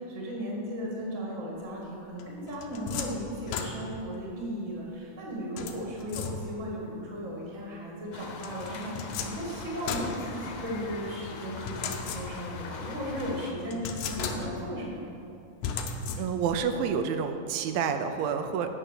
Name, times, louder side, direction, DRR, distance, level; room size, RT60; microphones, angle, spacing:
voice 1, 0.0-15.0, equal, 30° right, -3 dB, 1.5 m, -36 dB
sound 1, 2.2-4.2 5.6-6.8 8.4-10.9 11.6-12.6 13.1-13.2 13.7-14.8 15.6-16.6, left 6 dB, 90° left, 1.6 m, -36 dB
sound 2, 8.1-13.5, left 4 dB, 70° left, 1.9 m, -41 dB
voice 2, 16.2-18.7, right 6 dB, 85° right, 7 dB, 2.4 m, -29 dB
8.9 x 6.2 x 6.6 m, 2.7 s
omnidirectional pair, 4.2 m